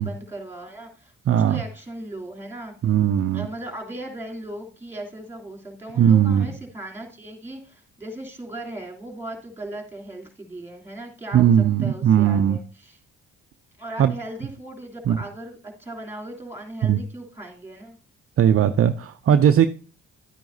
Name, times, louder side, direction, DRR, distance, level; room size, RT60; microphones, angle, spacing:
voice 1, 0.0-2.7 3.3-11.5 11.8-13.0 13.8-18.0, right 1 dB, 10° right, 3.0 m, -37 dB
voice 2, 1.3-1.6 2.8-3.5 6.0-6.5 11.3-12.6 14.0-14.1 15.1-15.2 16.8-17.0 18.4-19.7, right 9 dB, 45° right, 0.5 m, -18 dB
11.5 x 9.0 x 2.7 m
supercardioid pair, 55°, 31 cm